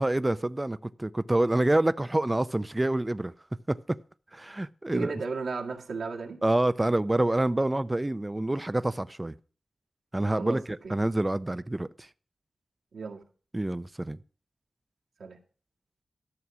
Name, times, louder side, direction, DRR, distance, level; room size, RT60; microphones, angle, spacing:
voice 1, 0.0-3.3 3.7-3.8 4.3-5.1 6.4-9.3 10.1-12.1 13.5-14.2, right 1 dB, 20° right, 0.5 m, -27 dB
voice 2, 4.9-6.4 10.4-10.6 10.8-10.9 12.9-13.2 15.2-15.4, right 4 dB, 90° right, 2.0 m, -34 dB
13.0 x 7.0 x 6.2 m
wide cardioid pair, 80°, 0 cm